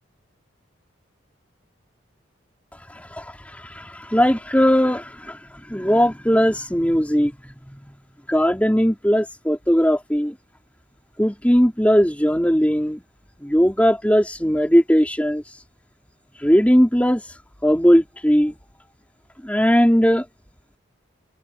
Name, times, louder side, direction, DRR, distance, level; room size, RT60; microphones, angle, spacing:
voice 1, 2.9-3.3 3.8-5.4 5.7-7.3 7.7-7.8 8.3-10.3 11.2-13.0 13.4-15.4 16.4-17.2 17.6-18.6 19.4-20.2, equal, 5° left, 4.1 m, -18 dB
head